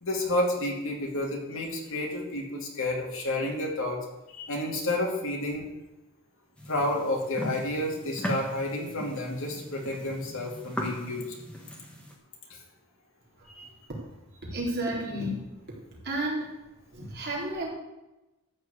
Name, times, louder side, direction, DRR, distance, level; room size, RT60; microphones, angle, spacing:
voice 1, 0.0-4.0 4.3-5.7 6.7-11.3 12.5-12.6 13.5-13.7, left 1 dB, 60° left, 0 dB, 2.5 m, -30 dB
sound 1, 6.6-12.2, equal, 5° left, 1.5 m, -38 dB
voice 2, 14.5-15.4 16.0-16.4 16.9-17.7, right 1 dB, 45° right, -4 dB, 3.7 m, -31 dB
13.0 x 4.7 x 8.4 m, 0.99 s
head